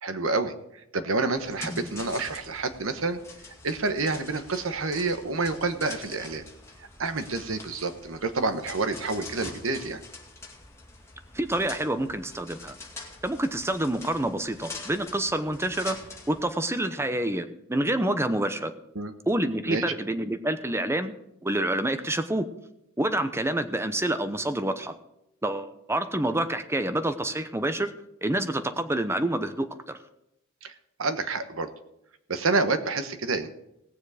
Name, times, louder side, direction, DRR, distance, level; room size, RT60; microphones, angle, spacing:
voice 1, 0.0-0.5 0.9-3.2 3.6-6.4 7.0-10.0 18.9-19.1 19.6-19.8 30.6-30.7 31.0-31.7 32.3-33.5, right 3 dB, 75° right, 9 dB, 1.2 m, -28 dB
sound 1, 1.4-16.4, left 3 dB, 15° left, 2.4 m, -44 dB
voice 2, 11.3-12.7 13.2-16.0 16.3-18.7 19.3-21.1 21.4-22.5 23.0-24.9 25.4-27.9 28.2-30.0, right 1 dB, 15° right, 10 dB, 0.8 m, -27 dB
18.5 x 7.2 x 5.0 m, 0.82 s
head